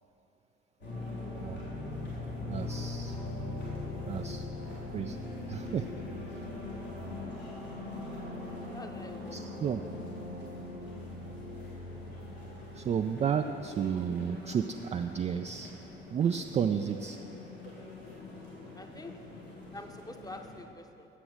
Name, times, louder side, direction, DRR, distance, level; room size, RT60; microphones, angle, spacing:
sound 1, 0.8-20.6, left 2 dB, 85° left, 2.9 m, -41 dB
voice 1, 2.5-3.2 3.5-3.6 4.1-4.4 4.9-5.9 9.3-9.8 12.7-15.7 16.1-17.2, right 7 dB, 25° right, 6 dB, 0.3 m, -32 dB
voice 2, 8.7-9.4 18.8-19.1 19.7-21.1, left 2 dB, 10° left, 6 dB, 0.8 m, -46 dB
9.9 x 7.7 x 6.1 m, 2.8 s
figure-of-eight pair, 45°, 30 cm